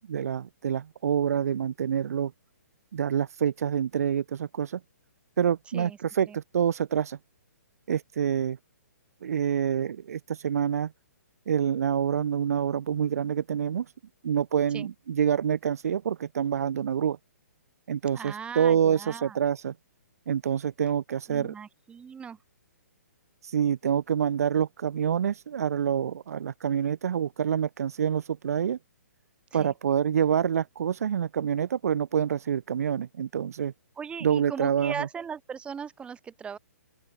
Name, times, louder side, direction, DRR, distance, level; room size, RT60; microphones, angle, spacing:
voice 1, 0.1-2.3 2.9-4.8 5.4-7.2 7.9-8.6 9.2-10.9 11.5-13.8 14.2-17.2 17.9-19.7 20.3-21.5 23.4-28.8 29.5-33.7 34.2-35.1, right 8 dB, 65° right, 1.6 m, -27 dB
voice 2, 18.1-19.4 21.3-22.4 29.5-29.7 34.0-36.6, right 6 dB, 10° right, 4.7 m, -38 dB
open air
hypercardioid pair, 135°, 9 cm